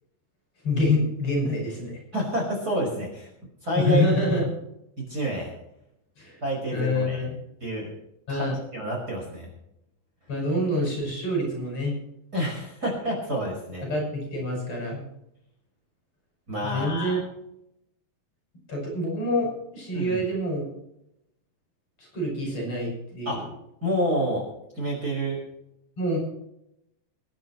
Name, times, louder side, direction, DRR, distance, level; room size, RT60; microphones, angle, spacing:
voice 1, 0.6-2.0 3.8-4.6 6.2-6.4 6.7-7.3 8.3-8.6 10.3-11.9 13.8-15.0 16.6-17.2 18.7-20.6 22.0-23.5 26.0-26.2, left 1 dB, 40° left, -2 dB, 8.7 m, -26 dB
voice 2, 2.1-3.3 3.6-4.0 5.0-5.5 6.4-7.2 7.6-7.9 8.3-8.5 8.7-9.5 12.3-13.9 16.5-17.2 19.9-20.2 23.3-23.4 23.8-24.4 24.7-25.4, equal, 25° right, -3 dB, 5.6 m, -28 dB
27.5 x 11.0 x 3.2 m, 0.81 s
omnidirectional pair, 4.4 m